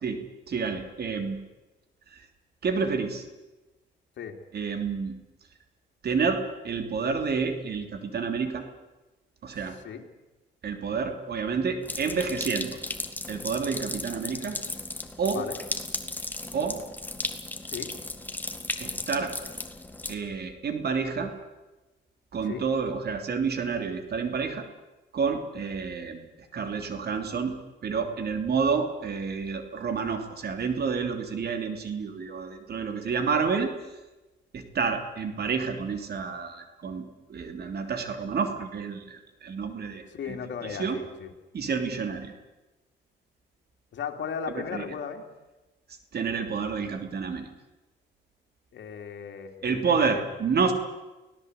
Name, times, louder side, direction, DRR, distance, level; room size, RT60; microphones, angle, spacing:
voice 1, 0.5-1.4 2.1-2.2 2.6-3.2 4.5-5.1 6.0-8.6 9.4-9.8 10.6-12.8 13.3-14.6 15.2-15.5 16.5-16.8 18.8-19.3 20.1-21.3 22.3-24.6 25.1-26.3 26.5-27.6 27.8-33.7 34.5-41.0 41.5-42.3 44.7-44.8 46.1-47.5 49.6-50.7, right 5 dB, 55° right, 6 dB, 3.0 m, -29 dB
voice 2, 9.5-10.0 15.3-15.6 17.7-17.9 22.4-22.7 40.1-41.3 43.9-45.2 48.7-50.2, left 7 dB, 65° left, 3 dB, 3.1 m, -36 dB
sound 1, 11.8-20.1, left 2 dB, 10° left, 2.0 m, -35 dB
24.0 x 17.5 x 8.2 m, 1.1 s
cardioid pair, 90°, 20 cm